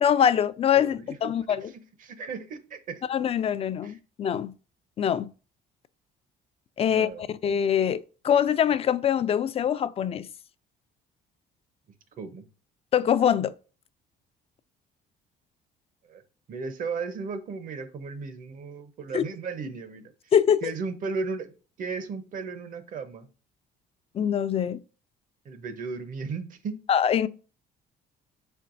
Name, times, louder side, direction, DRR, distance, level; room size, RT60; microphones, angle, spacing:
voice 1, 0.0-1.6 3.1-4.5 5.0-5.3 6.8-7.1 7.4-10.3 12.9-13.5 19.1-19.2 20.3-20.7 24.1-24.8 26.9-27.3, left 8 dB, 35° left, 0.3 m, -23 dB
voice 2, 0.7-1.2 1.6-3.0 3.8-4.0 6.9-7.2 12.2-12.5 16.1-16.2 16.5-20.3 20.6-21.5 21.8-23.3 25.4-26.8, right 4 dB, 55° right, 0.8 m, -35 dB
4.5 x 4.4 x 2.5 m
cardioid pair, 110°, 17 cm